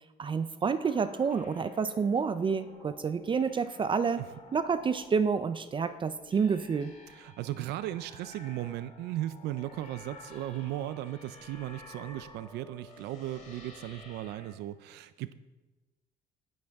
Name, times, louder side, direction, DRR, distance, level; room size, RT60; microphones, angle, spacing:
voice 1, 0.2-4.2 4.5-6.9, right 5 dB, 30° right, 12 dB, 0.5 m, -29 dB
sound 1, 0.6-14.6, left 3 dB, 50° left, 4.0 m, -52 dB
voice 2, 7.1-15.3, right 14 dB, 80° right, 14 dB, 0.5 m, -37 dB
18.0 x 7.8 x 3.6 m, 1.1 s
cardioid pair, 110°, 17 cm